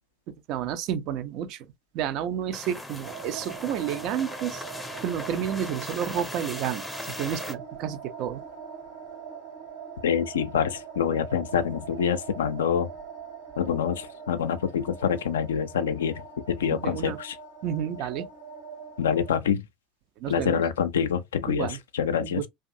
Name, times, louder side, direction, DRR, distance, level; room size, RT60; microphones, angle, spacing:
voice 1, 0.3-1.7 1.9-4.6 5.0-8.4 16.7-17.2 17.6-18.3 20.2-20.6 21.5-21.8 22.2-22.5, right 9 dB, 50° right, 0.4 m, -31 dB
sound 1, 2.5-7.5, left 1 dB, 5° left, 0.5 m, -39 dB
sound 2, 3.0-19.4, right 6 dB, 70° right, 1.2 m, -42 dB
voice 2, 10.0-12.9 13.6-16.2 16.5-17.4 19.0-19.6 20.3-21.7 21.9-22.4, left 7 dB, 75° left, 0.3 m, -26 dB
2.5 x 2.3 x 2.4 m
figure-of-eight pair, 75°, 0 cm